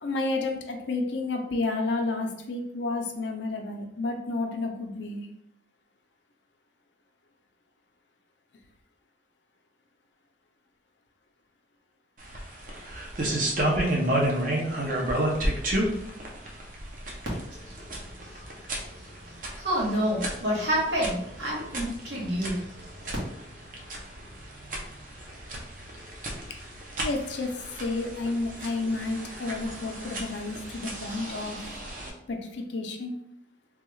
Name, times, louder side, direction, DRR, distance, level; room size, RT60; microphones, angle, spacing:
voice 1, 0.0-5.3 27.0-27.5 27.8-31.6 32.3-33.2, left 3 dB, 75° left, 4 dB, 0.5 m, -31 dB
sound 1, 12.2-32.1, right 1 dB, 45° right, 0.6 m, -32 dB
voice 2, 18.2-23.2, equal, 75° right, -5 dB, 1.3 m, -30 dB
3.4 x 2.3 x 3.0 m, 0.77 s
head